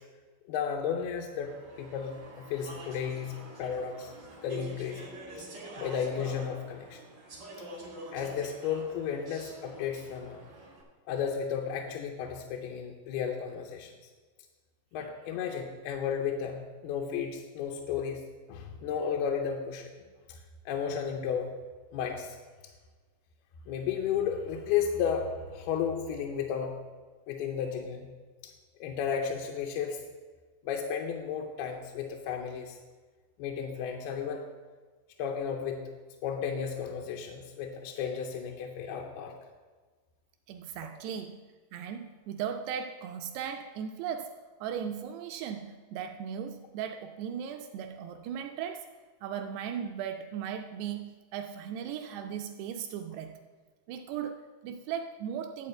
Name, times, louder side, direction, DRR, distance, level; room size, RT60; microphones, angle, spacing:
voice 1, 0.5-1.5 1.8-4.1 4.4-5.1 5.8-7.0 8.1-10.4 11.1-13.9 14.9-18.2 18.5-19.9 20.3-20.4 20.7-21.5 21.9-22.4 23.7-26.8 27.3-28.1 28.8-30.0 30.7-32.8 33.4-34.4 35.2-35.9 36.2-39.3, left 7 dB, 80° left, 1 dB, 2.4 m, -33 dB
Speech / Chatter, 1.4-10.8, right 2 dB, 65° right, 0.9 m, -46 dB
voice 2, 40.5-41.4 41.7-44.3 44.6-48.9 49.2-53.3 53.9-55.7, right 8 dB, 85° right, 5 dB, 2.4 m, -37 dB
11.0 x 4.2 x 7.6 m, 1.4 s
omnidirectional pair, 5.1 m